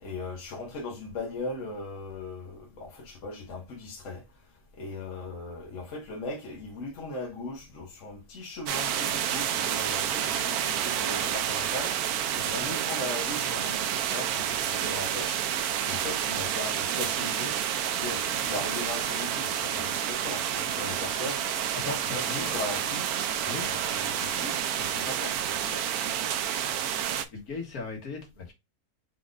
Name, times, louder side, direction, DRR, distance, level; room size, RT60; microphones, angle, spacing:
voice 1, 0.0-4.2 4.8-15.4 15.8-17.5 18.0-21.4 22.0-23.1 23.6-25.8, left 2 dB, 55° left, 1.4 m, -38 dB
sound 1, 8.7-27.2, right 10 dB, 75° right, 1.1 m, -29 dB
sound 2, 17.8-24.5, left 2 dB, 5° left, 1.6 m, -46 dB
voice 2, 21.8-22.6 23.4-23.7 27.3-28.5, left 4 dB, 70° left, 1.8 m, -37 dB
4.6 x 3.9 x 2.5 m
omnidirectional pair, 1.6 m